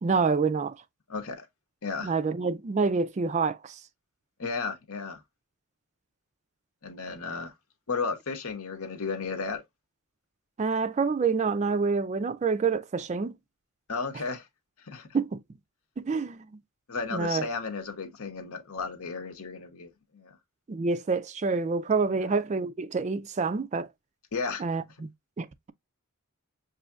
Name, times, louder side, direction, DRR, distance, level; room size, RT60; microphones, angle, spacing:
voice 1, 0.0-0.8 2.0-3.8 10.6-13.3 15.1-15.4 16.0-16.6 17.1-17.4 20.7-23.9 24.6-25.1 25.4-25.7, right 4 dB, 30° right, 0.3 m, -27 dB
voice 2, 1.1-1.5 1.8-2.1 4.4-5.2 6.8-7.5 7.9-9.6 13.9-14.5 14.9-15.1 16.9-20.4 22.1-22.3 24.3-24.6, left 4 dB, 75° left, 0.9 m, -34 dB
6.2 x 2.7 x 2.3 m
head